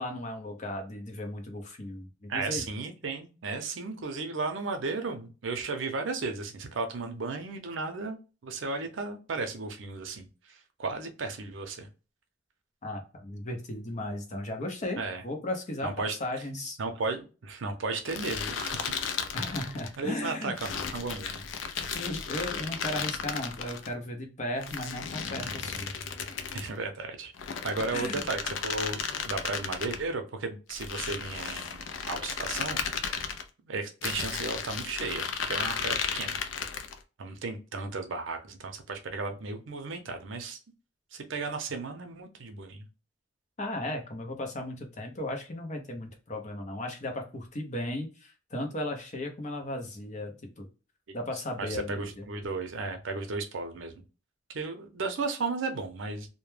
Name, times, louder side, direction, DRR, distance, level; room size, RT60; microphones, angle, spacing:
voice 1, 0.0-2.7 12.8-16.8 19.3-20.5 21.9-25.9 27.9-28.3 43.6-50.7 51.1-52.2, left 1 dB, 40° left, 3 dB, 0.6 m, -36 dB
voice 2, 2.3-8.2 8.4-11.9 15.0-15.2 15.8-16.2 16.8-18.9 20.0-21.4 26.5-27.3 27.6-33.3 33.6-36.4 37.2-40.6 41.1-42.9 51.6-54.0 54.5-56.3, right 3 dB, 80° right, 6 dB, 0.5 m, -34 dB
sound 1, 18.1-20.0 20.6-23.9 24.6-26.7 27.3-30.0 30.7-33.4 34.0-37.0, left 6 dB, 80° left, 0.4 m, -34 dB
2.1 x 2.1 x 3.1 m, 0.33 s
head